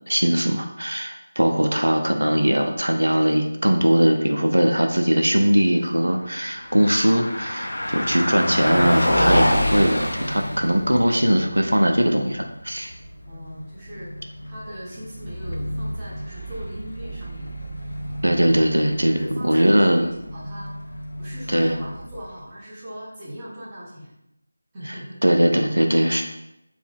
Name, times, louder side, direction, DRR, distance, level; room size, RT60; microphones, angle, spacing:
voice 1, 0.1-12.9 18.2-19.2 19.4-20.0 21.5-21.8 24.9-26.2, equal, 90° right, 4 dB, 0.4 m, -20 dB
voice 2, 1.4-1.7 13.2-17.5 19.1-24.1 24.7-25.2, equal, 15° right, -9 dB, 0.8 m, -38 dB
Car passing by, 6.3-22.4, equal, 70° left, 0.5 m, -28 dB
3.4 x 2.2 x 3.5 m, 0.85 s
figure-of-eight pair, 170°, 0 cm